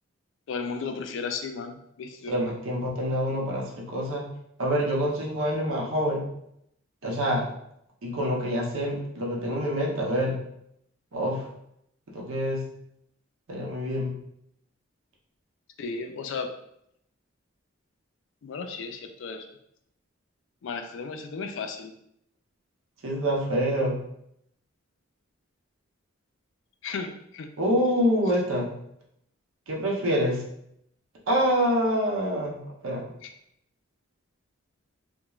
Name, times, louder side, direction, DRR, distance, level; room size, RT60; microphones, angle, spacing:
voice 1, 0.5-2.4 15.8-16.5 18.4-19.5 20.6-21.9 26.8-27.5 33.2-33.3, left 5 dB, 65° left, 6 dB, 0.3 m, -34 dB
voice 2, 2.3-4.3 4.6-6.2 7.0-7.5 8.0-10.4 11.1-11.5 12.1-12.6 13.5-14.1 23.0-24.0 27.6-28.7 29.7-30.4 31.3-32.6 32.8-33.0, equal, 85° right, -2 dB, 0.7 m, -26 dB
2.3 x 2.1 x 3.0 m, 0.74 s
head